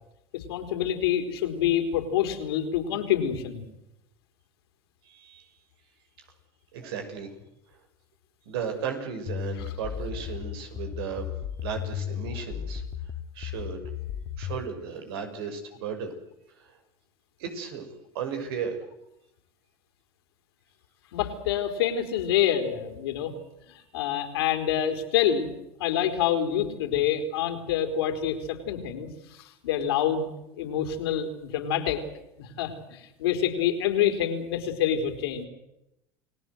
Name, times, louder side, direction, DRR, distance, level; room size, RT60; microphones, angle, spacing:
voice 1, 0.3-3.6 9.6-9.7 21.1-23.3 23.7-25.5 25.8-32.0 32.4-35.5, left 9 dB, 85° left, 7 dB, 4.2 m, -27 dB
voice 2, 5.1-5.4 6.7-7.3 8.5-11.3 11.6-12.8 13.3-13.8 14.4-16.1 17.4-17.9 18.1-18.8, right 6 dB, 80° right, 6 dB, 5.9 m, -35 dB
sound 1, 9.3-14.6, left 9 dB, 50° left, 2.1 m, -35 dB
29.0 x 18.5 x 8.0 m, 0.85 s
supercardioid pair, 95°, 13 cm